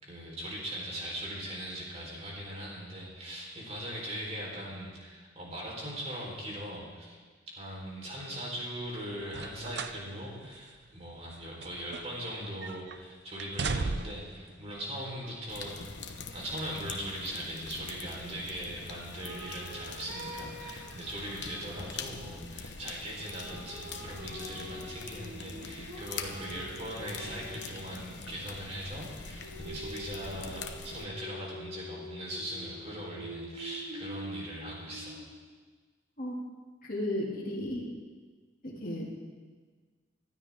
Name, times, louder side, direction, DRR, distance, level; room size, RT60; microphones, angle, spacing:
voice 1, 0.0-7.2 7.6-35.2, equal, 35° right, -3 dB, 4.2 m, -40 dB
sound 1, 9.3-10.0 10.4-10.6 11.3-12.3 12.6-13.0 13.4-14.3 15.2-15.3, right 4 dB, 60° right, 0.6 m, -36 dB
sound 2, 15.5-31.1, left 4 dB, 65° left, 1.1 m, -44 dB
sound 3, 19.2-22.2 23.2-28.0 29.4-35.5, equal, 85° right, 3.3 m, -45 dB
voice 2, 36.8-37.9 38.6-39.1, left 1 dB, 50° left, -3 dB, 2.6 m, -34 dB
25.0 x 13.0 x 3.7 m, 1.4 s
head